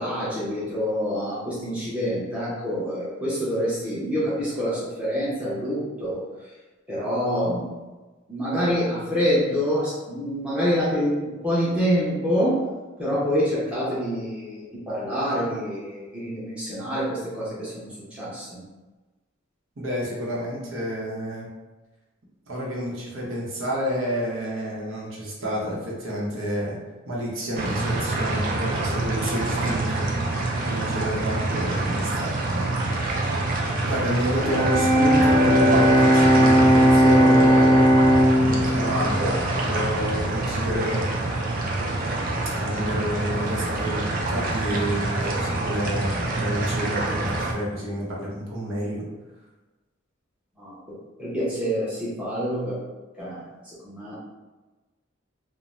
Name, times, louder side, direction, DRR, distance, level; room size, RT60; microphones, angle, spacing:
voice 1, 0.0-6.2 6.9-7.7 8.3-12.7 13.0-18.6 42.8-43.1 50.6-50.8 51.2-52.8 53.2-53.4 53.8-54.2, equal, 5° right, -10 dB, 0.7 m, -26 dB
voice 2, 19.8-21.5 22.5-26.8 27.1-30.0 30.6-32.9 33.8-37.9 38.4-41.0 42.5-49.1, equal, 75° right, -4 dB, 0.8 m, -29 dB
sound 1, 27.6-47.5, right 2 dB, 45° right, 0.4 m, -26 dB
Bowed string instrument, 34.4-40.4, equal, 15° left, 0.4 m, -18 dB
2.5 x 2.1 x 3.1 m, 1.2 s
head